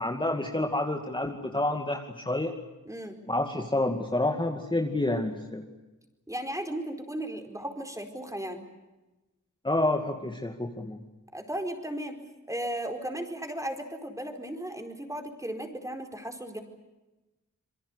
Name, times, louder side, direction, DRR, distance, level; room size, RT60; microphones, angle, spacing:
voice 1, 0.0-2.5 3.3-5.6 9.6-11.0, left 1 dB, 15° left, 3 dB, 2.4 m, -28 dB
voice 2, 2.9-3.2 6.3-8.6 11.3-12.2 12.5-16.6, right 1 dB, 10° right, 5 dB, 4.4 m, -35 dB
27.0 x 23.5 x 8.2 m, 1.1 s
wide cardioid pair, 90°, 30 cm